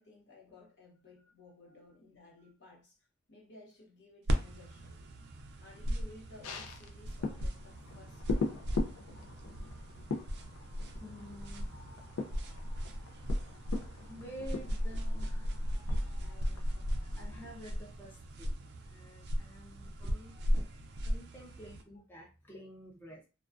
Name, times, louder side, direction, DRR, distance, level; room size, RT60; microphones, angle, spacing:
voice 1, 0.0-3.0 3.3-5.0 5.6-8.6 16.2-17.1 21.9-22.0, left 2 dB, 55° left, 0.9 m, -57 dB
sound 1, 4.3-21.8, equal, 55° right, 0.4 m, -37 dB
sound 2, 6.4-18.1 18.5-18.6, left 3 dB, 80° left, 0.4 m, -42 dB
voice 2, 11.0-11.7 12.8-12.9 13.3-16.7 17.0-18.5 18.8-20.5 20.7-23.2, equal, 10° left, 0.5 m, -51 dB
2.2 x 2.2 x 2.4 m
head